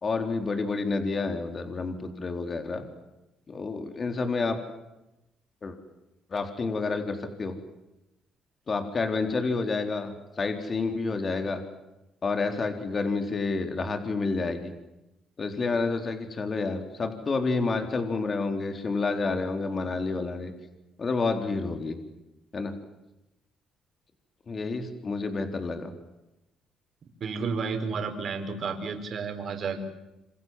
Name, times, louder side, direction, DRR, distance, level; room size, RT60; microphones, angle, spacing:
voice 1, 0.0-2.8 3.5-4.6 5.6-5.8 6.3-7.5 8.7-11.6 12.2-14.7 15.4-20.5 21.0-22.0 22.5-22.7 24.5-25.9, left 3 dB, 40° left, 6 dB, 4.2 m, -29 dB
voice 2, 27.2-29.8, right 5 dB, 55° right, 6 dB, 5.3 m, -31 dB
27.5 x 27.5 x 7.9 m, 0.94 s
cardioid pair, 75°, 0 cm